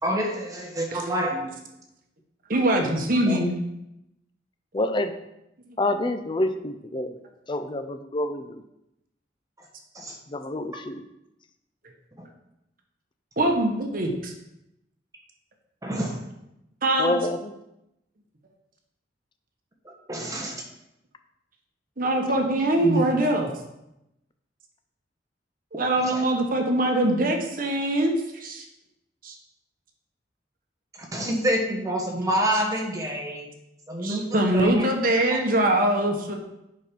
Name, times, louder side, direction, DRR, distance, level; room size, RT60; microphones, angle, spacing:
voice 1, 0.0-1.5 9.9-10.2 12.2-12.3 15.8-16.2 19.8-20.6 22.1-23.0 26.0-26.2 31.1-33.5 33.9-34.9, equal, 20° right, 0 dB, 1.4 m, -28 dB
voice 2, 2.5-3.5 13.4-14.3 16.8-17.2 22.0-23.5 25.7-28.6 29.2-29.3 34.0-36.3, right 1 dB, 50° right, 3 dB, 1.2 m, -23 dB
voice 3, 4.7-5.1 5.8-7.2 7.5-8.6 10.3-11.1 17.0-17.5, left 1 dB, 25° left, 8 dB, 0.5 m, -27 dB
7.5 x 5.9 x 5.3 m, 0.86 s
head